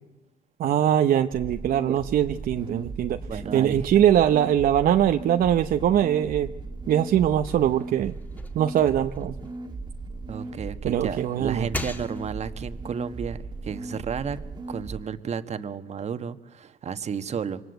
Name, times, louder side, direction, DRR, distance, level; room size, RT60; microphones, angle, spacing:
voice 1, 0.6-6.5 6.9-8.1 8.5-9.4 10.8-11.7, right 10 dB, 60° right, 7 dB, 0.9 m, -22 dB
sound 1, 1.3-15.0, right 3 dB, 25° right, 1.7 m, -37 dB
voice 2, 3.3-3.9 10.3-14.4 14.7-17.6, right 7 dB, 40° right, 10 dB, 1.4 m, -32 dB
sound 2, 7.2-10.4 10.8-12.6, left 2 dB, 10° left, 1.9 m, -40 dB
27.5 x 24.0 x 8.1 m, 0.96 s
cardioid pair, 110°, 17 cm